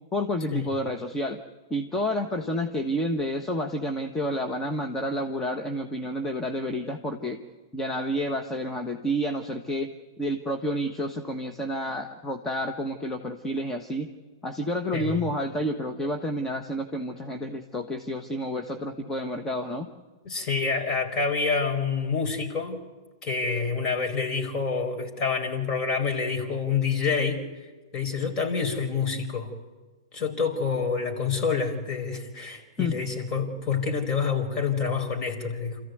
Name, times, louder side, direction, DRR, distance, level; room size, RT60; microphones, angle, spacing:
voice 1, 0.1-1.4 1.7-7.4 7.7-9.9 10.2-14.1 14.4-19.9 32.8-33.0, equal, 15° left, 5 dB, 1.4 m, -29 dB
voice 2, 20.2-22.8 23.2-27.4 27.9-29.5 30.1-35.8, left 5 dB, 35° left, 4 dB, 4.6 m, -27 dB
27.5 x 14.5 x 9.4 m, 1.3 s
hypercardioid pair, 110°, 2 cm